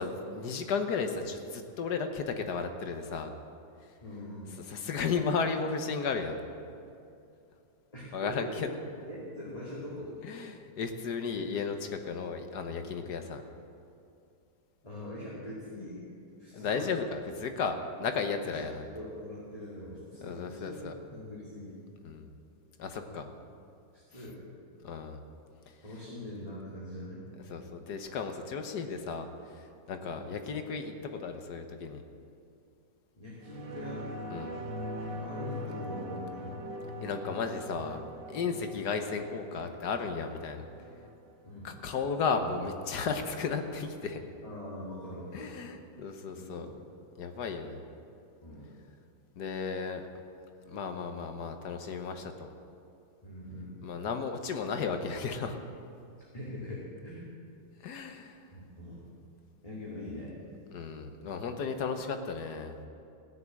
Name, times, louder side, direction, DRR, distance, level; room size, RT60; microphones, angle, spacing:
voice 1, 0.0-3.3 4.7-6.4 8.1-8.7 10.2-13.4 16.5-18.9 20.2-20.9 22.0-22.3 22.8-23.3 24.8-25.2 27.5-32.0 34.3-34.5 37.0-38.0 38.3-40.6 41.6-44.2 45.3-46.7 47.2-47.8 49.4-50.0 50.7-52.5 53.8-55.6 57.8-58.4 60.7-62.7, left 5 dB, 65° left, 6 dB, 1.5 m, -34 dB
voice 2, 4.0-4.5 7.9-8.5 9.1-10.2 13.0-13.1 14.8-16.1 16.4-16.9 18.4-18.6 18.9-20.9 21.1-21.8 23.1-23.2 23.9-24.4 25.8-27.3 29.9-30.1 33.2-34.1 35.2-36.7 41.4-41.7 44.4-45.5 46.2-46.7 48.4-48.7 53.2-53.8 56.3-57.3 58.5-59.0 59.6-60.3, left 1 dB, 20° left, -7 dB, 2.4 m, -42 dB
sound 1, 33.4-42.4 42.8-42.9, equal, 85° right, 2.0 m, -42 dB
16.5 x 7.0 x 8.7 m, 2.5 s
omnidirectional pair, 2.0 m